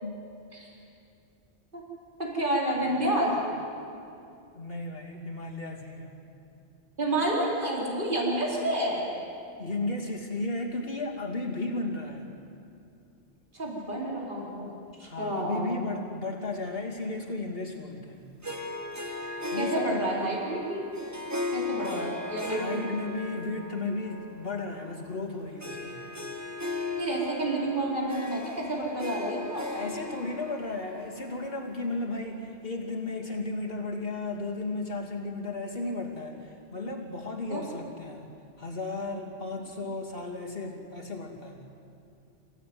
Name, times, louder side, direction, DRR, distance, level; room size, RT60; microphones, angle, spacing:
voice 1, 2.2-3.4 7.0-9.0 13.5-14.7 15.0-15.7 19.6-20.8 21.5-22.8 27.0-29.7 37.5-37.6, right 1 dB, 45° right, -3 dB, 4.4 m, -29 dB
voice 2, 2.8-3.2 4.5-6.1 9.6-12.3 15.0-18.3 19.2-20.3 21.7-26.0 29.7-38.3 38.6-41.7, left 2 dB, 55° left, 1 dB, 3.1 m, -35 dB
Harp, 18.4-32.1, left 2 dB, 15° right, 1.6 m, -37 dB
27.5 x 16.5 x 9.6 m, 2.6 s
omnidirectional pair, 1.2 m